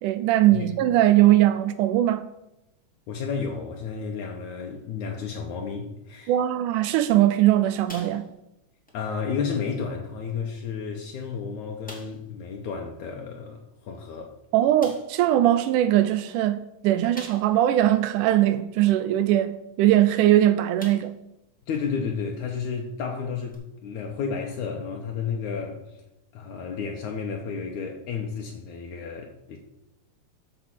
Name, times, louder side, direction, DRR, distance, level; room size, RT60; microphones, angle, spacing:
voice 1, 0.0-2.3 6.3-8.3 14.5-21.2, right 13 dB, 80° right, 1.9 m, -20 dB
voice 2, 3.1-6.3 8.9-14.3 21.7-26.0 26.3-29.6, left 6 dB, 70° left, 2.2 m, -32 dB
sound 1, 7.9-8.6 8.9-9.0 9.6-9.7 10.6-10.7 11.1-11.2 11.8-12.3 13.9-14.0 14.8-15.2 17.1-17.7 18.2-18.3 20.1-20.3 20.8-21.3 21.7-21.8 23.5-23.6, equal, 5° left, 1.3 m, -44 dB
14.0 x 5.0 x 6.0 m
omnidirectional pair, 3.8 m